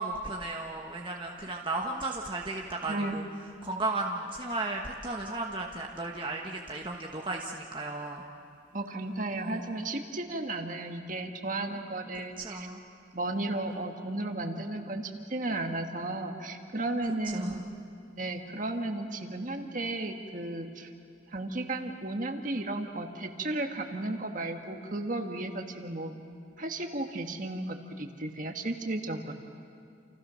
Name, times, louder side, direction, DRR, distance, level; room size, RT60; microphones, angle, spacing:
voice 1, 0.0-3.2 3.6-8.2 9.4-9.7 11.7-11.8 12.4-12.8 17.3-17.7, right 2 dB, 25° right, 0 dB, 1.3 m, -35 dB
voice 2, 8.7-12.7 13.1-17.6 18.1-20.9 21.3-26.1 26.6-29.4, right 2 dB, 40° right, 4 dB, 1.7 m, -34 dB
29.0 x 29.0 x 6.4 m, 2.4 s
head